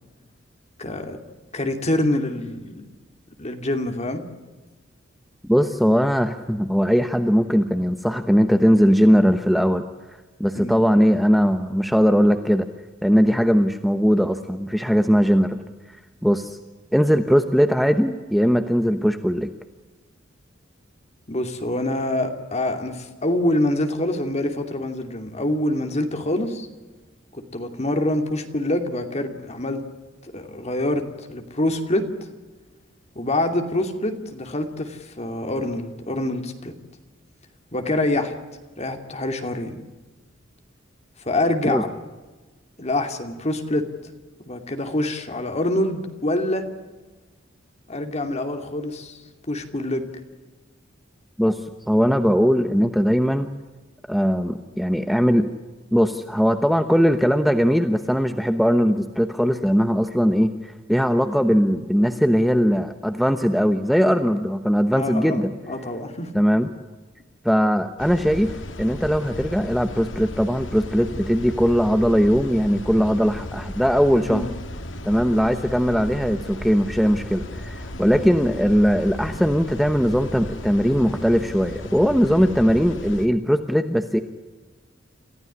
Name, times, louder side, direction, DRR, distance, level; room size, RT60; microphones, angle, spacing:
voice 1, 0.8-1.2 1.5-2.9 3.4-4.2 10.5-10.7 21.3-26.7 27.3-29.8 30.3-32.1 33.1-36.7 37.7-38.3 38.8-39.8 41.2-41.9 42.8-43.9 44.5-46.7 47.9-49.2 49.5-50.2 64.9-66.3 74.2-74.5, left 1 dB, 35° left, 5 dB, 2.6 m, -25 dB
voice 2, 5.5-9.8 10.4-12.7 13.0-15.6 16.2-16.6 16.9-19.5 41.6-41.8 51.4-51.6 51.9-53.5 54.1-55.5 55.9-65.5 66.3-66.7 67.4-74.4 75.0-84.2, equal, ahead, 7 dB, 1.0 m, -20 dB
sound 1, 68.0-83.3, left 1 dB, 70° left, 2.0 m, -35 dB
28.0 x 15.0 x 9.7 m, 1.2 s
head